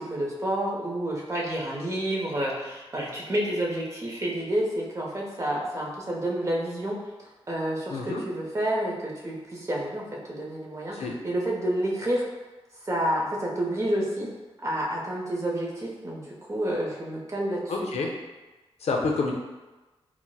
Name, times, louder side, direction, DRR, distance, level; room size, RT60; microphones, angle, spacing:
voice 1, 0.0-12.3 12.8-14.3 14.6-17.7, right 1 dB, 30° right, -3 dB, 0.7 m, -29 dB
voice 2, 7.9-8.2 10.9-11.2 17.7-18.1 18.8-19.3, left 3 dB, 80° left, 0 dB, 0.5 m, -28 dB
4.4 x 2.1 x 2.2 m, 1.1 s
wide cardioid pair, 120°, 11 cm